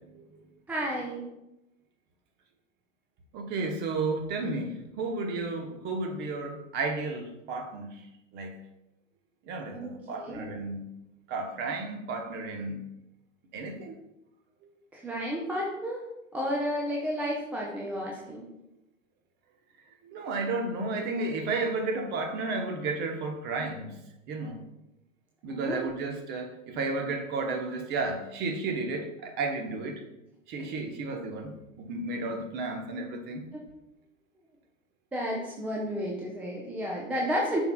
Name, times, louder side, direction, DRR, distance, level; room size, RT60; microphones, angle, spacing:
voice 1, 0.7-1.4 9.7-10.5 14.9-16.0 16.3-18.5 25.5-25.8 33.5-33.6 35.1-37.6, equal, 5° right, -2 dB, 0.4 m, -32 dB
voice 2, 3.3-7.9 8.3-8.6 9.5-10.8 11.3-12.8 13.5-14.0 20.0-23.9 24.3-24.6 25.4-30.0 30.5-33.5, right 3 dB, 25° right, 4 dB, 0.9 m, -33 dB
10.5 x 4.4 x 2.2 m, 0.90 s
figure-of-eight pair, 100°, 39 cm